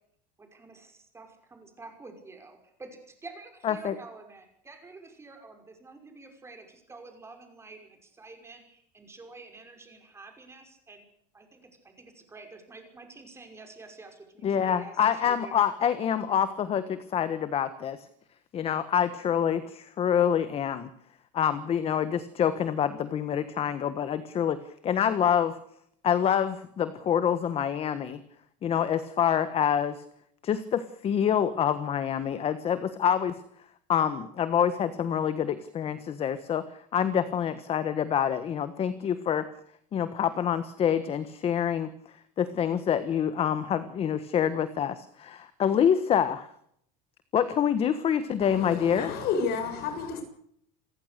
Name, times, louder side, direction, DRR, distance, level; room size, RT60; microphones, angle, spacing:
voice 1, 0.4-11.0 11.3-15.6, right 3 dB, 15° right, 5 dB, 5.7 m, -48 dB
voice 2, 3.6-3.9 14.4-18.0 18.5-20.9 21.3-25.6 26.0-28.2 28.6-30.0 30.4-33.4 33.9-39.5 39.9-41.9 42.4-46.5 47.3-49.1, left 8 dB, 30° left, 12 dB, 1.4 m, -26 dB
voice 3, 48.4-50.2, left 5 dB, 50° left, 8 dB, 7.0 m, -31 dB
28.0 x 15.5 x 6.8 m, 0.68 s
cardioid pair, 160°, 20 cm